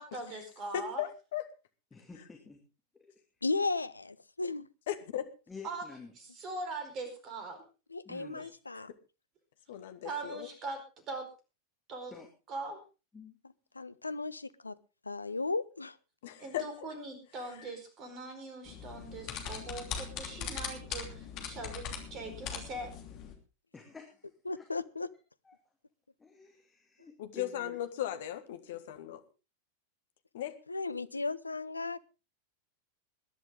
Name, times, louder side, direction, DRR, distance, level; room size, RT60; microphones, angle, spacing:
voice 1, 0.0-1.0 5.6-5.9 6.2-7.6 8.4-8.5 10.0-10.8 11.1-11.3 11.9-12.1 12.5-12.8 16.4-21.8 22.1-22.9, right 3 dB, 30° right, 7 dB, 4.7 m, -41 dB
voice 2, 0.7-1.4 4.9-5.3 8.7-8.8 9.7-10.5 16.2-16.9 27.2-29.2 30.3-30.6, left 12 dB, 55° left, 9 dB, 1.6 m, -37 dB
voice 3, 1.9-2.6 5.5-6.1 8.1-8.5 12.1-12.3 13.1-13.4 23.7-24.3 24.6-24.7 25.5-25.6 26.2-27.8 28.7-28.8, left 4 dB, 15° left, 2 dB, 2.5 m, -49 dB
voice 4, 3.4-4.7 7.9-8.9 13.7-14.8 15.0-16.0 24.5-25.1 30.7-32.0, left 3 dB, 80° left, 16 dB, 0.6 m, -35 dB
sound 1, 18.7-23.3, left 7 dB, 40° left, 3.0 m, -41 dB
21.0 x 11.0 x 3.7 m, 0.31 s
figure-of-eight pair, 90°, 0 cm